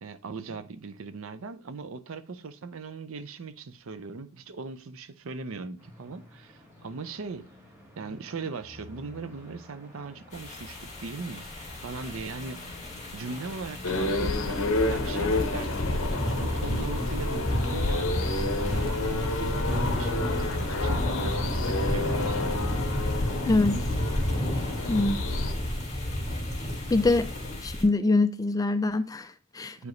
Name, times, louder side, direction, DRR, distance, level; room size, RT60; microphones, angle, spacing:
voice 1, 0.0-7.4 8.0-12.6 13.1-15.9 16.4-18.1 18.6-22.8 27.2-27.3 29.8-29.9, right 4 dB, 70° right, 0.6 m, -39 dB
sound 1, 5.8-24.3, equal, 15° right, 1.8 m, -50 dB
sound 2, 10.3-27.8, left 1 dB, 35° left, 2.3 m, -32 dB
sound 3, 13.8-25.5, left 2 dB, 65° left, 0.8 m, -29 dB
voice 2, 23.4-23.9 24.9-25.2 26.9-27.3 27.6-29.9, left 2 dB, 15° left, 0.3 m, -24 dB
8.2 x 4.9 x 3.1 m
head